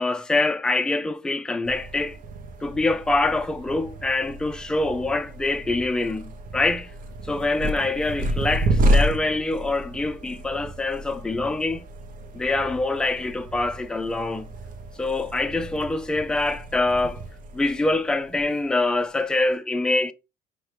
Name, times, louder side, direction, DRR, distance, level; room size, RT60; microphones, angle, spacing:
voice 1, 0.0-2.2 2.6-6.9 7.2-11.9 12.3-14.5 15.0-17.2 17.5-20.1, left 2 dB, 5° left, 0.4 m, -25 dB
sound 1, 1.6-19.1, right 1 dB, 50° right, 0.8 m, -30 dB
4.7 x 2.9 x 3.2 m
cardioid pair, 110°, 17 cm